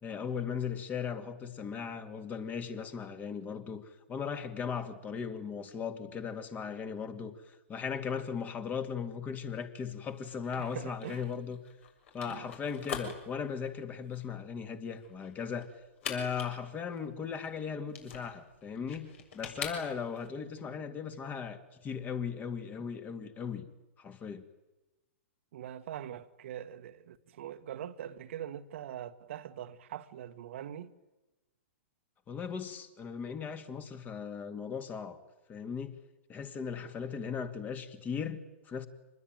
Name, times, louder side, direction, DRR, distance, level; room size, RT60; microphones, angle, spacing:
voice 1, 0.0-11.6 12.1-15.7 16.1-23.7 24.0-24.4 32.3-35.2 35.5-36.0 36.3-38.9, left 6 dB, 20° left, 2.4 m, -38 dB
sound 1, 10.1-20.3, left 6 dB, 60° left, 6.9 m, -44 dB
voice 2, 10.6-11.3 12.2-12.5 25.5-30.9, right 10 dB, 60° right, 1.5 m, -43 dB
26.0 x 20.5 x 9.2 m
hypercardioid pair, 120°, 7 cm